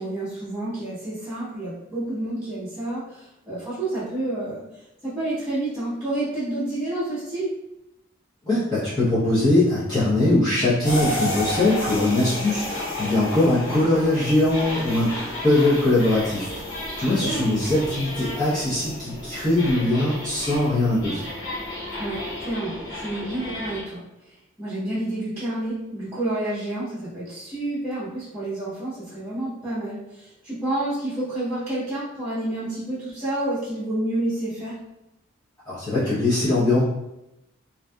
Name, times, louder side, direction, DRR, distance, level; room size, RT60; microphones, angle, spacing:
voice 1, 0.0-4.6 5.0-7.5 17.1-17.6 22.0-24.0 24.6-34.8, right 1 dB, 15° right, -14 dB, 0.9 m, -29 dB
voice 2, 8.5-15.2 15.4-21.2 35.7-36.8, left 2 dB, 20° left, -12 dB, 0.7 m, -21 dB
sound 1, 10.8-23.8, left 1 dB, 55° left, 0.9 m, -32 dB
2.6 x 2.3 x 2.2 m, 0.87 s
head